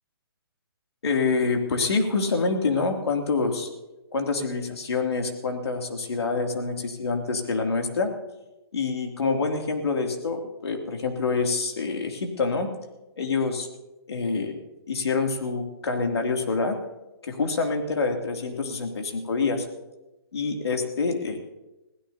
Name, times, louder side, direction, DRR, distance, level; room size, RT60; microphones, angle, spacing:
voice 1, 1.0-3.7 4.1-8.1 8.7-12.7 13.2-13.7 14.1-14.5 14.9-16.8 17.2-19.7 20.3-21.4, left 4 dB, 80° left, 3 dB, 2.7 m, -26 dB
22.5 x 16.0 x 2.8 m, 0.99 s
hypercardioid pair, 150°, 13 cm